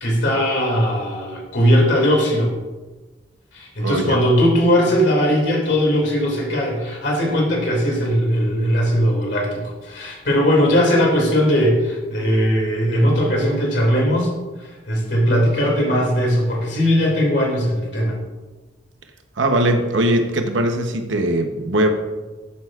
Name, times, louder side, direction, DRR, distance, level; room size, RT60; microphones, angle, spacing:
voice 1, 0.0-2.5 3.5-14.3 14.6-18.2, equal, 65° left, -1 dB, 2.4 m, -19 dB
voice 2, 3.8-4.2 19.4-21.9, right 1 dB, 80° right, 5 dB, 0.9 m, -20 dB
14.0 x 7.8 x 2.4 m, 1.2 s
head